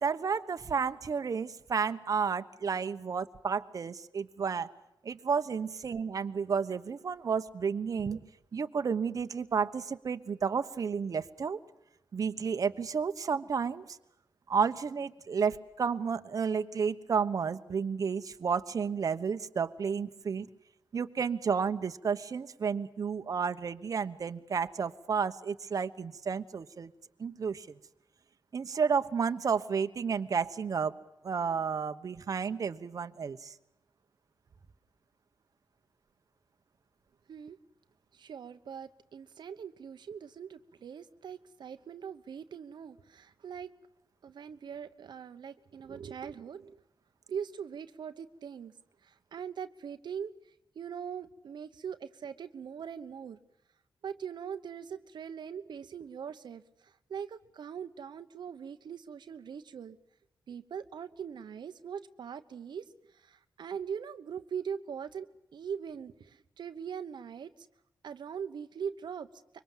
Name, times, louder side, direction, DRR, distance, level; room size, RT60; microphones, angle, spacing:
voice 1, 0.0-4.7 5.0-8.2 8.5-11.6 12.1-14.0 14.5-20.5 20.9-26.9 27.2-27.7 28.5-30.9 31.2-33.5, right 6 dB, 50° right, 9 dB, 1.1 m, -31 dB
voice 2, 38.1-43.7 44.2-46.8 47.3-48.7 49.0-53.4 54.0-60.0 60.5-67.7 68.0-69.3, right 7 dB, 75° right, 8 dB, 1.0 m, -41 dB
25.0 x 23.5 x 7.4 m, 0.86 s
wide cardioid pair, 125°, 8 cm